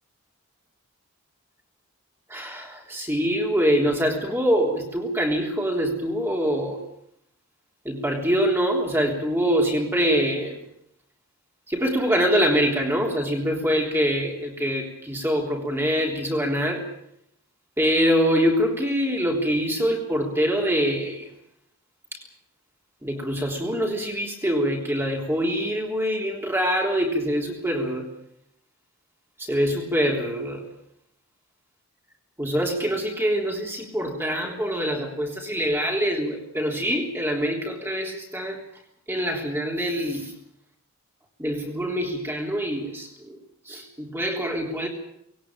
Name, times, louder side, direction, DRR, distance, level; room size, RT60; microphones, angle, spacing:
voice 1, 2.3-6.8 7.9-10.6 11.7-16.8 17.8-21.3 22.1-22.2 23.0-28.1 29.4-30.6 32.4-38.6 39.1-40.3 41.4-43.4 43.7-44.9, equal, 10° right, 0 dB, 3.5 m, -24 dB
20.0 x 18.0 x 8.9 m, 0.74 s
head